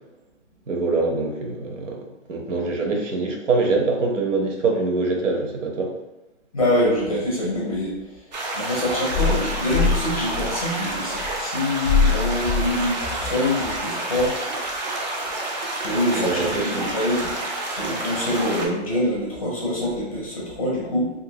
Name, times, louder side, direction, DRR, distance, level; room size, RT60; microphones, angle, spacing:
voice 1, 0.7-2.0 2.3-5.9 16.2-16.9, right 3 dB, 90° right, 1 dB, 0.9 m, -24 dB
voice 2, 6.5-8.0 8.5-14.3 15.8-17.3 17.7-21.1, left 2 dB, 30° left, -4 dB, 0.5 m, -23 dB
sound 1, 8.3-18.7, right 2 dB, 40° right, 0.5 m, -29 dB
2.6 x 2.6 x 2.8 m, 0.96 s
hypercardioid pair, 175°, 36 cm